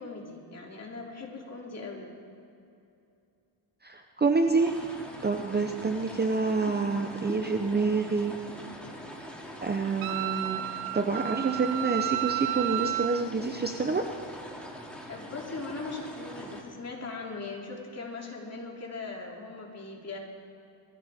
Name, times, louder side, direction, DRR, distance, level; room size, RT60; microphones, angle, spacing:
voice 1, 0.0-2.1 15.1-20.2, left 3 dB, 30° left, -1 dB, 3.0 m, -39 dB
voice 2, 3.8-8.3 9.6-14.1, right 4 dB, 20° right, 4 dB, 0.8 m, -28 dB
sound 1, 4.6-16.6, equal, ahead, 2.5 m, -43 dB
Wind instrument woodwind instrument, 10.0-13.2, right 16 dB, 85° right, 0.7 m, -32 dB
21.5 x 14.5 x 3.6 m, 2.7 s
cardioid pair, 110°, 47 cm